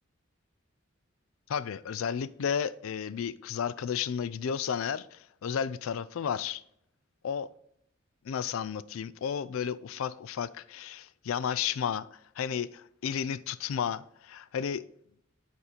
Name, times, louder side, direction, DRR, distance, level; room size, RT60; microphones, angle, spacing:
voice 1, 1.5-6.6 7.2-7.5 8.3-12.1 12.4-14.8, left 7 dB, 85° left, 0.4 m, -33 dB
6.9 x 4.3 x 5.0 m
head